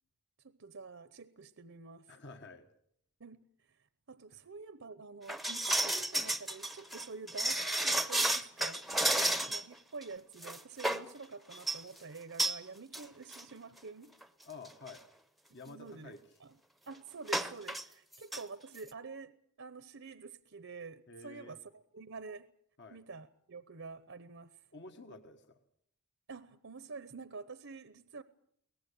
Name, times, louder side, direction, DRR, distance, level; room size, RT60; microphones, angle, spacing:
voice 1, 0.4-2.1 3.2-3.8 4.1-14.1 15.7-16.1 16.4-16.6 16.9-22.5 22.9-24.6 26.3-28.2, right 4 dB, 60° right, 0.9 m, -48 dB
voice 2, 2.1-2.7 4.3-4.4 9.0-9.2 14.4-15.0 15.5-16.2 21.1-21.6 22.8-23.0 24.7-25.6, left 3 dB, 55° left, 1.5 m, -50 dB
sound 1, 5.3-9.7 10.0-10.1 10.4-11.1 11.5-11.8 12.4-12.6 12.9-13.0 13.3-13.4 14.2-14.3 14.6-14.9 17.3-17.8 18.1-18.4 18.7-18.8, right 1 dB, ahead, 0.8 m, -32 dB
23.0 x 18.5 x 8.3 m
head